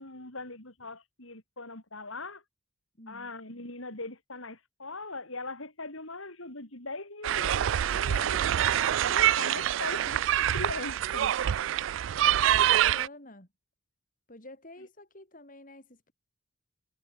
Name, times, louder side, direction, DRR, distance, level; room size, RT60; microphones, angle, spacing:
voice 1, 0.0-2.4 3.1-8.4 9.1-11.3, left 2 dB, 70° left, 6.3 m, -40 dB
voice 2, 3.0-3.3 9.5-9.7 12.1-13.5 14.3-16.1, left 1 dB, 40° left, 5.5 m, -50 dB
sound 1, 7.2-13.1, right 11 dB, 65° right, 0.3 m, -26 dB
head